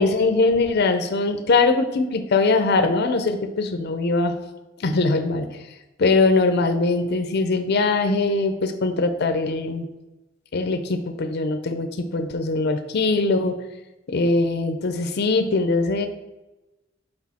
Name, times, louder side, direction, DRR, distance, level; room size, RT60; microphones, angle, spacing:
voice 1, 0.0-4.4 4.8-5.6 6.0-9.9 10.5-13.6 14.1-16.1, left 3 dB, 55° left, 8 dB, 0.5 m, -21 dB
6.1 x 5.0 x 4.2 m, 1.0 s
head